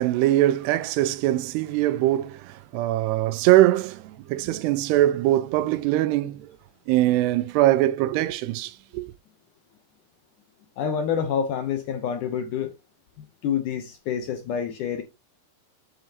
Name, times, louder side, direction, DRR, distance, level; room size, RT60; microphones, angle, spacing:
voice 1, 0.0-6.6 6.9-9.1, right 15 dB, 90° right, 2.7 m, -22 dB
voice 2, 10.8-12.7 13.4-15.0, left 7 dB, 70° left, 2.0 m, -27 dB
7.9 x 7.7 x 2.9 m
omnidirectional pair, 4.6 m